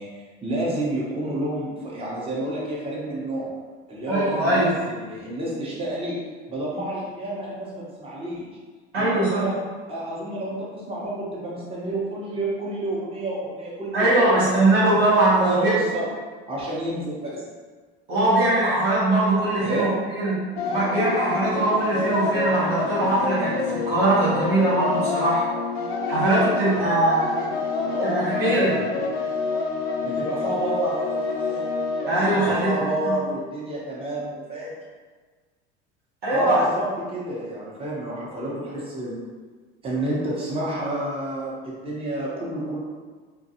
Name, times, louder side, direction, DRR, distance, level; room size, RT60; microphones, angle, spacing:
voice 1, 0.0-3.5 3.9-6.2 6.5-8.5 9.0-9.6 9.9-14.1 14.3-14.4 15.4-16.0 16.5-17.4 19.6-19.9 27.8-29.0 30.0-31.7 32.0-34.7 36.3-39.2 39.8-42.8, right 1 dB, 20° right, -6 dB, 0.8 m, -29 dB
voice 2, 4.1-4.7 8.9-9.5 13.9-15.7 18.1-20.4 20.7-25.5 26.1-27.3 28.1-28.8 32.1-32.7 33.0-33.1 36.2-36.6, right 2 dB, 85° right, -10 dB, 1.1 m, -21 dB
sound 1, 20.6-33.3, left 3 dB, 85° left, 0.5 m, -27 dB
2.5 x 2.2 x 2.8 m, 1.4 s
hypercardioid pair, 80°, 30 cm